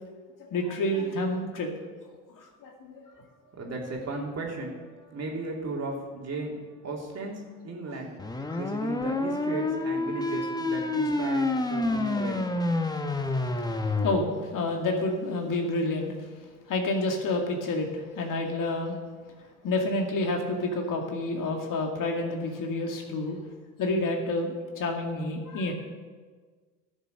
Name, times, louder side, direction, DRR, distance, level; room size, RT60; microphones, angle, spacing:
voice 1, 0.4-1.7 2.3-3.0 8.5-8.6 13.4-13.5 14.0-16.1 16.7-19.0 19.6-23.4 23.8-25.7, left 2 dB, 50° left, 2 dB, 2.2 m, -29 dB
voice 2, 3.4-6.5 6.8-8.1 8.5-12.4, right 2 dB, 35° right, -1 dB, 3.1 m, -35 dB
sound 1, 8.2-14.2, left 2 dB, 10° left, 1.0 m, -28 dB
13.0 x 7.2 x 6.5 m, 1.4 s
hypercardioid pair, 75°, 42 cm